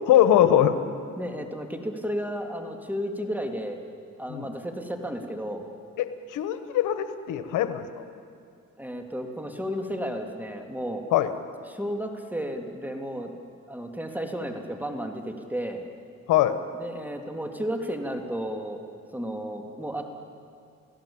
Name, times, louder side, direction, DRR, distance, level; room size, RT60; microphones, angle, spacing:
voice 1, 0.1-0.8 4.3-4.5 6.0-8.0 11.1-11.3 16.3-16.6, left 11 dB, 90° left, 10 dB, 1.4 m, -22 dB
voice 2, 1.2-3.8 4.2-5.6 8.8-11.0 11.7-13.3 13.7-15.8 16.7-18.8 19.1-20.1, equal, 5° right, 4 dB, 3.0 m, -33 dB
30.0 x 17.0 x 8.9 m, 2.3 s
cardioid pair, 90°, 30 cm